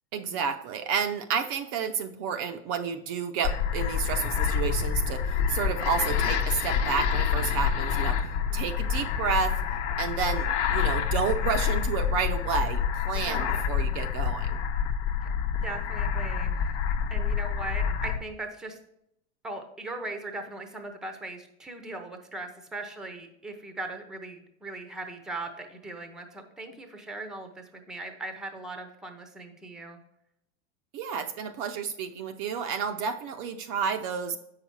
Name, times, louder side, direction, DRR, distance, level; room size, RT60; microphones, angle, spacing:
voice 1, 0.1-8.2 8.5-9.5 10.0-14.6 30.9-34.4, right 6 dB, 40° right, 6 dB, 0.5 m, -30 dB
sound 1, 3.4-18.2, left 7 dB, 65° left, 0.9 m, -27 dB
voice 2, 8.5-9.2 13.1-13.6 15.6-16.8 17.1-18.8 19.4-30.0, right 2 dB, ahead, 6 dB, 0.6 m, -39 dB
7.7 x 5.7 x 4.5 m, 0.79 s
supercardioid pair, 140°, 38 cm